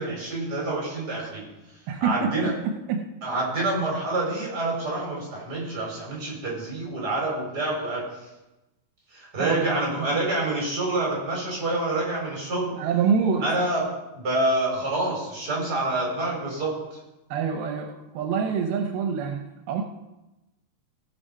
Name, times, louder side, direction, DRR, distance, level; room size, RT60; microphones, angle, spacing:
voice 1, 0.0-1.4 2.0-2.5 3.2-8.0 9.1-12.7 13.4-13.8 14.1-16.7, right 2 dB, 25° right, -4 dB, 4.6 m, -27 dB
voice 2, 1.9-3.1 9.4-10.2 12.7-13.7 17.3-19.8, right 6 dB, 80° right, 4 dB, 2.6 m, -27 dB
17.0 x 6.4 x 5.3 m, 0.99 s
omnidirectional pair, 4.4 m